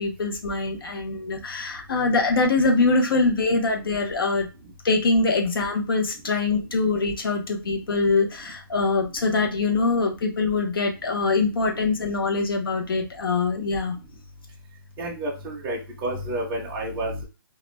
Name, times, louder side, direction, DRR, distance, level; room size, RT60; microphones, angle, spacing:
voice 1, 0.0-4.5 4.8-13.9, left 3 dB, 75° left, 3 dB, 0.8 m, -23 dB
voice 2, 15.0-17.2, right 1 dB, 10° right, -3 dB, 0.4 m, -30 dB
2.4 x 2.1 x 3.1 m, 0.29 s
hypercardioid pair, 175°, 12 cm